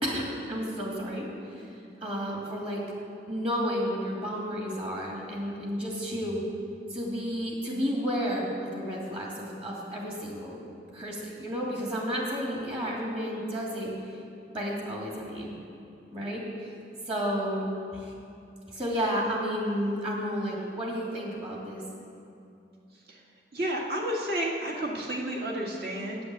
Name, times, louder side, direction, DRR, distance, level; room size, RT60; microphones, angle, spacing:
voice 1, 0.0-1.7 2.0-2.8 3.3-6.4 6.9-10.6 10.9-14.2 14.5-15.6 16.1-16.7 17.1-18.1 18.7-21.8, equal, 35° right, -3 dB, 2.6 m, -32 dB
voice 2, 23.5-26.2, right 1 dB, 60° right, -2 dB, 1.9 m, -31 dB
9.5 x 9.0 x 7.8 m, 2.6 s
head